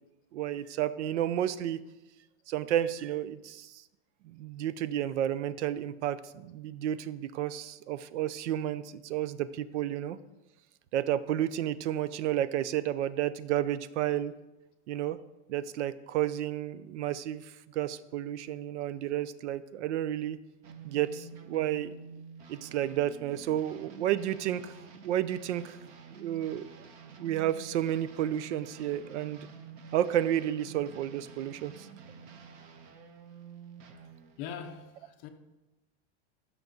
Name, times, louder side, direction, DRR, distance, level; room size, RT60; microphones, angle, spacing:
voice 1, 0.3-1.8 2.5-3.8 4.2-10.2 10.9-14.3 14.9-15.2 15.5-20.4 20.8-21.9 22.5-24.7 25.0-25.8 26.1-26.7 27.2-29.5 29.9-31.9, right 11 dB, 80° right, 0.6 m, -31 dB
sound 1, 20.6-34.4, right 5 dB, 25° right, 0.4 m, -49 dB
voice 2, 34.4-35.3, left 8 dB, 25° left, 0.5 m, -41 dB
15.0 x 6.1 x 3.9 m
supercardioid pair, 180°, 34 cm